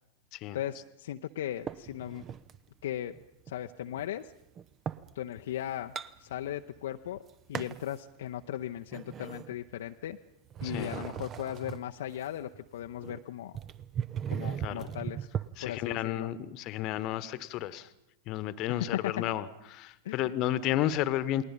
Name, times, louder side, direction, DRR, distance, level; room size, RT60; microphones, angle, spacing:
voice 1, 0.5-2.2 2.8-3.2 3.5-4.3 5.1-5.9 6.2-7.2 7.5-10.2 10.6-13.5 14.3-15.3 15.6-16.3 18.7-19.1 20.0-20.3, left 11 dB, 60° left, 5 dB, 0.7 m, -37 dB
sound 1, 1.7-2.6 3.1-5.1 5.6-6.8 7.1-7.9 8.4-10.1 10.5-15.5, right 8 dB, 30° right, 0.8 m, -38 dB
voice 2, 10.6-10.9 14.6-14.9 15.6-17.9 18.3-21.4, left 12 dB, 40° left, 17 dB, 1.2 m, -32 dB
29.0 x 21.0 x 5.4 m, 0.83 s
figure-of-eight pair, 90°, 0 cm